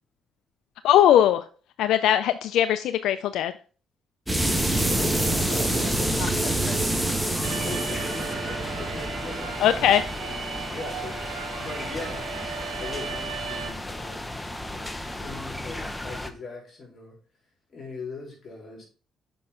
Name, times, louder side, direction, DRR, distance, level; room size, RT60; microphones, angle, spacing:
voice 1, 0.8-1.4 1.8-3.5 9.6-10.0, left 11 dB, 85° left, 11 dB, 0.3 m, -20 dB
sound 1, 4.3-10.8, right 1 dB, 5° right, 1.3 m, -27 dB
sound 2, 4.4-16.3, left 1 dB, 10° left, 0.8 m, -35 dB
voice 2, 4.9-12.2 12.8-14.3 14.7-17.2 17.7-18.8, left 3 dB, 45° left, -2 dB, 3.9 m, -41 dB
Alarm, 7.4-13.7, right 7 dB, 85° right, 1.0 m, -36 dB
6.7 x 5.4 x 3.7 m, 0.38 s
cardioid pair, 90°, 0 cm